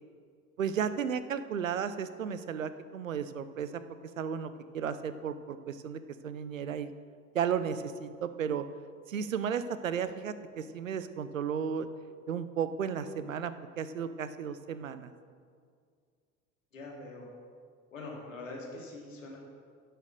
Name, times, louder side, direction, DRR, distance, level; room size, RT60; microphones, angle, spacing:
voice 1, 0.6-3.8 4.2-6.9 7.3-8.6 9.1-11.9 12.3-15.1, right 7 dB, 85° right, 12 dB, 0.6 m, -34 dB
voice 2, 16.7-17.3 17.9-19.4, left 2 dB, 80° left, -1 dB, 2.2 m, -43 dB
11.0 x 6.8 x 7.3 m, 2.1 s
figure-of-eight pair, 60°, 38 cm